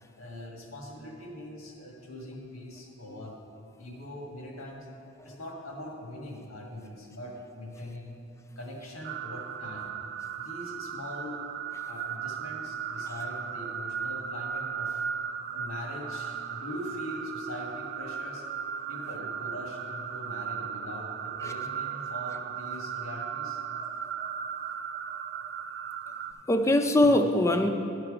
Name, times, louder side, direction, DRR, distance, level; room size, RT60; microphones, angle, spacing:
voice 1, 0.2-3.4 3.8-4.9 5.2-8.2 8.6-9.9 10.3-11.4 11.9-15.1 15.5-18.5 18.9-23.6, left 1 dB, 90° left, 0 dB, 1.6 m, -42 dB
sound 1, 9.0-26.3, right 7 dB, 50° right, 0.4 m, -36 dB
voice 2, 26.5-27.7, left 1 dB, 15° left, 7 dB, 0.4 m, -23 dB
11.0 x 5.9 x 5.0 m, 2.7 s
head